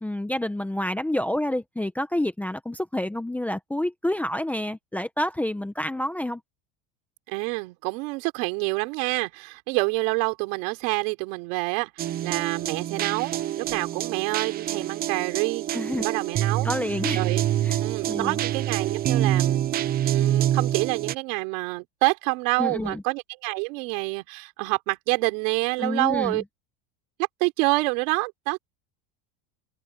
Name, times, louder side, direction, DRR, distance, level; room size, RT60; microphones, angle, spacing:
voice 1, 0.0-6.4 15.7-16.1 16.6-17.2 17.6-17.8 18.1-18.4 22.6-23.0 25.8-26.4, left 1 dB, 5° left, 0.9 m, -28 dB
voice 2, 7.3-15.7 16.0-16.7 17.1-17.4 17.8-19.6 20.0-26.4 27.4-28.6, right 29 dB, 70° right, 4.2 m, -27 dB
sound 1, 12.0-21.1, right 12 dB, 25° right, 0.4 m, -26 dB
cardioid pair, 155°, 41 cm